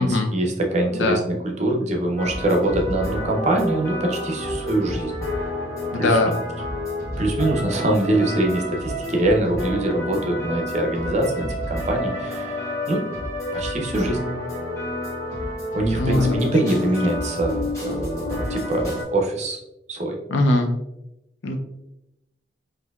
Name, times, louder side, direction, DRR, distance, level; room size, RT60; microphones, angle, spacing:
voice 1, 0.0-5.1 6.0-6.4 7.2-13.0 13.5-14.3 15.7-19.6 19.9-20.2, right 1 dB, 40° right, 1 dB, 0.6 m, -24 dB
sound 1, 2.2-19.0, left 1 dB, 15° left, 1.3 m, -29 dB
voice 2, 5.9-6.3 16.0-16.5 20.3-20.7 21.4-21.6, left 2 dB, 85° left, 5 dB, 0.5 m, -21 dB
4.3 x 2.6 x 2.3 m, 0.89 s
head